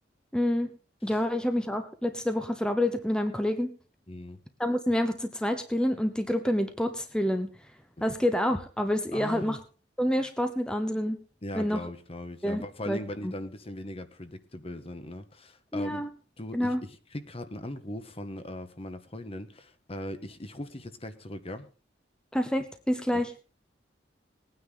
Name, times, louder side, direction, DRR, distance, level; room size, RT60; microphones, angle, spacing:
voice 1, 0.3-0.7 1.0-3.7 4.6-7.5 8.0-9.6 10.0-11.2 11.6-11.8 12.4-13.0 13.2-13.3 15.7-16.1 16.5-16.8 22.3-23.3, left 1 dB, 5° left, 7 dB, 0.9 m, -28 dB
voice 2, 4.1-4.4 9.1-9.6 11.4-16.0 16.4-21.7 23.1-23.2, left 1 dB, 35° left, 10 dB, 1.3 m, -39 dB
20.0 x 9.5 x 3.9 m, 0.37 s
head